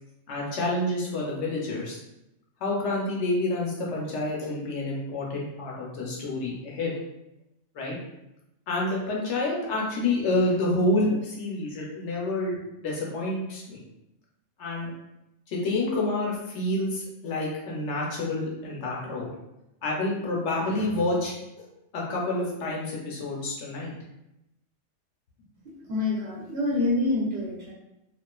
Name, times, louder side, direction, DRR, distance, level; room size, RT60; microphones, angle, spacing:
voice 1, 0.3-2.0 2.6-6.9 7.7-7.9 8.7-13.8 14.6-14.9 15.5-19.3 19.8-21.3 21.9-23.9, left 2 dB, 65° left, -3 dB, 0.9 m, -28 dB
voice 2, 25.6-27.7, left 2 dB, 60° right, -5 dB, 0.8 m, -27 dB
2.4 x 2.3 x 2.2 m, 0.88 s
omnidirectional pair, 1.3 m